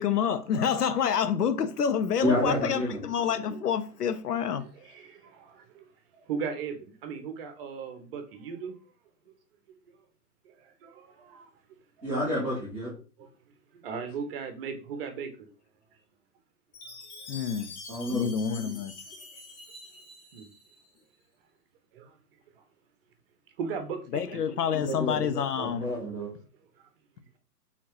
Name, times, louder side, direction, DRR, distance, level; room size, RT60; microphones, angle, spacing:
voice 1, 0.0-4.6 17.3-17.7 18.1-18.9 24.1-25.9, left 7 dB, 80° left, 0.7 m, -28 dB
voice 2, 2.2-3.0 12.0-12.9 17.9-18.3 24.7-25.3 25.6-26.3, left 1 dB, ahead, 0.3 m, -29 dB
voice 3, 4.7-5.9 6.1-8.7 9.3-9.4 10.4-11.5 12.0-12.1 13.2-13.3 13.7-15.3 17.1-17.4 20.3-20.5 21.9-22.2 22.6-22.7 23.6-24.4 26.8-26.9, right 6 dB, 40° right, 0.9 m, -38 dB
Chime, 16.7-20.9, left 3 dB, 55° left, 1.8 m, -46 dB
4.5 x 3.6 x 3.0 m
figure-of-eight pair, 110°, 47 cm